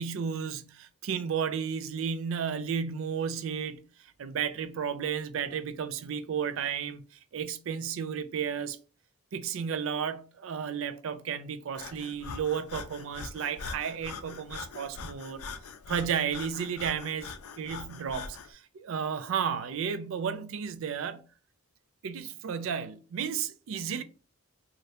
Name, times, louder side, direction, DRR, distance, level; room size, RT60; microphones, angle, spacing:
voice 1, 0.0-8.8 9.3-15.4 15.9-21.2 22.0-24.0, right 7 dB, 65° right, 0.4 m, -33 dB
Breathing, 11.7-18.5, left 5 dB, 85° left, 0.4 m, -42 dB
2.8 x 2.4 x 3.1 m
head